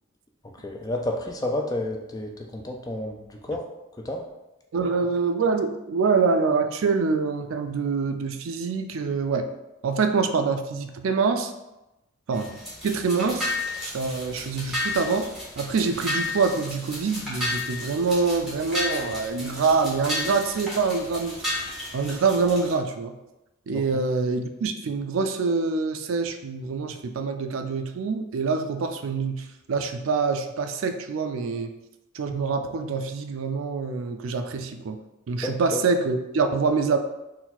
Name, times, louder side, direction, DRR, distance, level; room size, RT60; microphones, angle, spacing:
voice 1, 0.6-3.6 4.0-4.2 23.9-24.0 35.4-35.8, left 1 dB, 15° left, 1 dB, 0.4 m, -30 dB
voice 2, 4.7-9.5 9.8-11.5 12.3-12.6 12.8-13.5 13.9-15.3 15.6-21.4 21.9-23.2 23.7-31.7 32.1-35.0 35.3-37.0, right 4 dB, 65° right, 7 dB, 0.4 m, -25 dB
sound 1, 12.3-22.7, left 2 dB, ahead, 1.3 m, -32 dB
4.0 x 2.3 x 4.2 m, 0.96 s
head